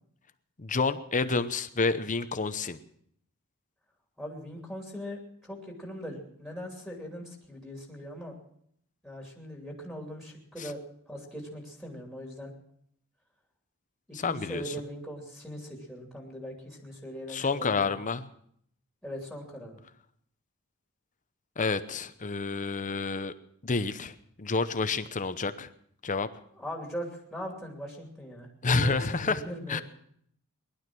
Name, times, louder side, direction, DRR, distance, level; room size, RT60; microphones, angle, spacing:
voice 1, 0.6-2.8 10.6-10.7 14.1-14.7 17.3-18.3 21.6-23.3 23.6-25.7 26.0-26.3 28.6-29.4 29.7-29.8, left 4 dB, 35° left, 12 dB, 0.8 m, -29 dB
voice 2, 4.2-8.3 9.0-10.8 11.1-12.5 14.2-17.9 19.0-19.8 26.5-29.8, equal, ahead, 0 dB, 2.8 m, -40 dB
20.0 x 11.5 x 6.1 m, 0.68 s
head